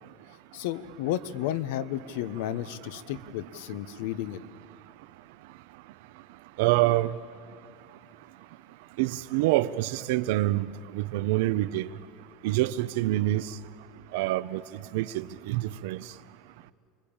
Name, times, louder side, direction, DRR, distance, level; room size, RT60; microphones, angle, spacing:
voice 1, 0.5-4.4, left 12 dB, 70° left, 1.0 m, -32 dB
voice 2, 6.6-7.1 9.0-10.7 10.9-11.9 12.4-13.4 14.1-14.6 14.9-16.0, right 16 dB, 65° right, 0.7 m, -26 dB
29.5 x 22.0 x 8.8 m
supercardioid pair, 170°, 0 cm